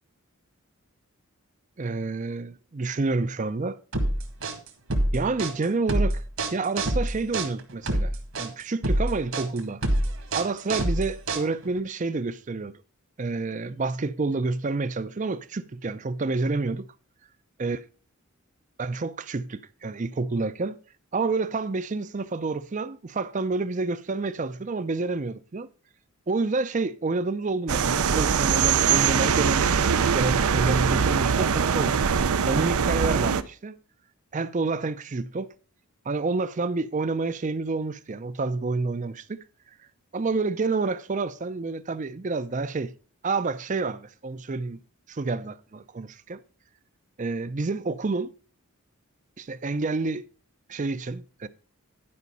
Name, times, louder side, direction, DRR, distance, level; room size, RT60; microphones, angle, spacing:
voice 1, 1.8-3.8 5.1-6.2 6.5-8.1 8.4-9.8 10.3-12.7 13.2-16.9 17.6-17.8 18.8-20.8 21.1-25.7 26.3-32.0 32.4-33.8 34.3-35.5 36.1-39.4 40.1-42.9 43.2-44.8 45.1-46.4 47.2-48.3 49.4-50.2 50.7-51.5, right 3 dB, 35° right, 0.5 m, -28 dB
sound 1, 3.9-11.8, right 1 dB, 70° right, 1.7 m, -26 dB
sound 2, 27.7-33.4, right 6 dB, 85° right, 0.6 m, -22 dB
11.0 x 5.2 x 5.4 m
head